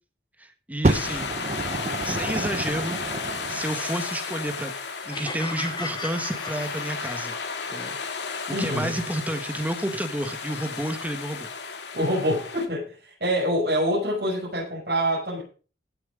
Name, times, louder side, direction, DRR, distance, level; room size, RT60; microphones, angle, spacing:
voice 1, 0.4-1.4 2.0-3.0 3.5-4.7 5.0-7.3 7.7-11.5, right 1 dB, 10° right, 7 dB, 1.5 m, -30 dB
sound 1, 0.8-12.7, left 5 dB, 75° left, 2.1 m, -34 dB
Fire, 0.8-3.7 4.5-4.6, right 2 dB, 35° right, 0.7 m, -28 dB
sound 2, 5.1-7.4, left 2 dB, 25° left, 3.2 m, -36 dB
voice 2, 8.5-8.9 11.9-15.4, equal, 60° right, -6 dB, 6.5 m, -26 dB
16.0 x 7.5 x 5.0 m, 0.36 s
head